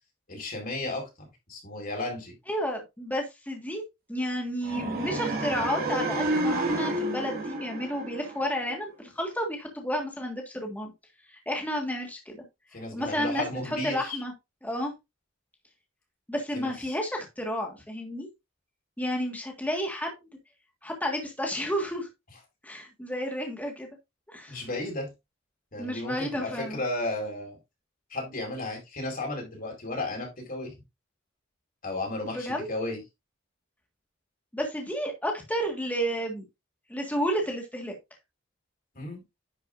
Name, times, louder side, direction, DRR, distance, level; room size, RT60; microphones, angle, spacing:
voice 1, 0.3-2.3 12.7-14.2 16.5-16.7 24.5-25.1 25.7-27.6 28.1-30.8 31.8-33.0 38.9-39.2, left 2 dB, 45° left, 4.5 m, -34 dB
voice 2, 2.5-3.8 4.1-10.9 11.3-12.4 12.9-13.4 13.8-14.3 14.6-14.9 16.3-18.3 19.0-20.1 20.8-22.1 22.6-23.9 24.3-24.6 25.8-26.8 32.3-32.7 34.5-36.4 36.9-37.9, equal, 10° left, 1.7 m, -31 dB
sound 1, 4.6-8.7, right 1 dB, 50° right, 2.4 m, -30 dB
10.5 x 6.4 x 2.6 m
head